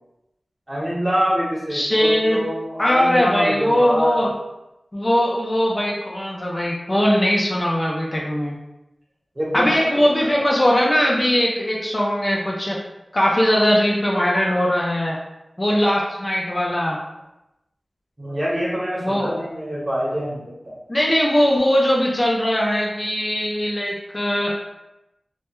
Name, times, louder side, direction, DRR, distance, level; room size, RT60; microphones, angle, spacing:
voice 1, 0.7-4.3 9.4-10.4 18.2-20.8, equal, 30° right, -6 dB, 0.8 m, -25 dB
voice 2, 1.7-2.4 2.8-4.3 4.9-8.6 9.5-12.8 13.1-15.2 15.6-17.0 19.0-19.4 20.9-24.5, equal, 30° left, -3 dB, 0.4 m, -20 dB
2.2 x 2.1 x 2.9 m, 0.91 s
wide cardioid pair, 85°, 0 cm